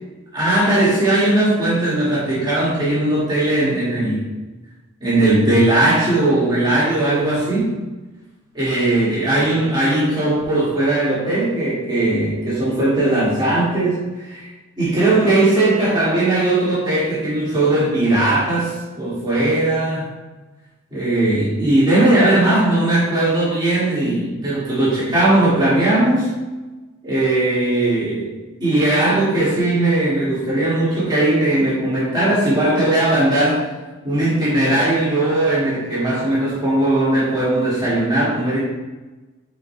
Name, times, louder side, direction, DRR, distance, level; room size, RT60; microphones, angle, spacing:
voice 1, 0.3-4.3 5.0-7.8 8.5-14.5 14.8-20.1 20.9-26.3 27.0-28.3 28.6-33.7 34.0-38.6, right 1 dB, 20° right, -9 dB, 2.0 m, -18 dB
8.6 x 4.8 x 2.2 m, 1.2 s
head